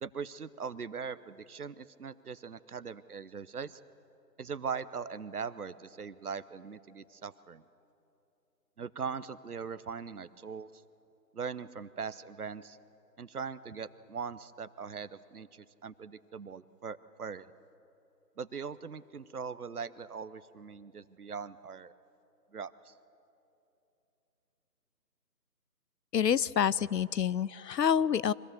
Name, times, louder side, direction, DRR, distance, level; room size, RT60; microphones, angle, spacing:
voice 1, 0.0-3.8 4.4-7.6 8.8-10.7 11.3-12.8 13.2-17.5 18.4-21.9 22.5-22.9, right 6 dB, 65° right, 15 dB, 0.8 m, -40 dB
voice 2, 26.1-28.3, left 8 dB, 80° left, 20 dB, 0.6 m, -27 dB
24.5 x 17.0 x 6.7 m, 2.9 s
figure-of-eight pair, 165°, 49 cm